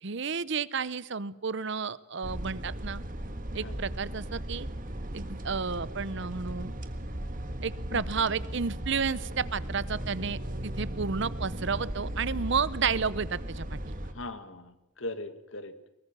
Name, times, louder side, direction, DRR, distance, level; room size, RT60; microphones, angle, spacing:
voice 1, 0.0-3.0 3.5-4.7 5.1-6.7 7.6-13.8, right 5 dB, 55° right, 19 dB, 0.7 m, -31 dB
sound 1, 2.2-14.1, right 1 dB, 40° right, 1.6 m, -37 dB
voice 2, 13.9-15.7, left 2 dB, 60° left, 11 dB, 1.8 m, -40 dB
22.5 x 19.5 x 7.4 m, 0.93 s
head